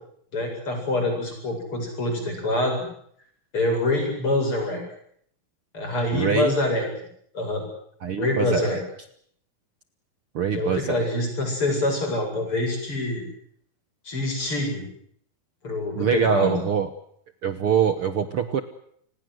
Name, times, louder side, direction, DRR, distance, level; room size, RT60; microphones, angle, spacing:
voice 1, 0.3-2.8 3.5-4.8 5.7-6.9 7.3-7.6 8.2-8.8 10.5-13.2 14.1-14.9 15.6-16.5, left 2 dB, 35° left, 2 dB, 8.9 m, -25 dB
voice 2, 6.1-6.5 8.0-8.8 10.3-11.1 15.9-16.9 17.4-18.6, right 7 dB, 70° right, 10 dB, 1.3 m, -24 dB
28.5 x 21.0 x 8.0 m, 0.67 s
omnidirectional pair, 4.3 m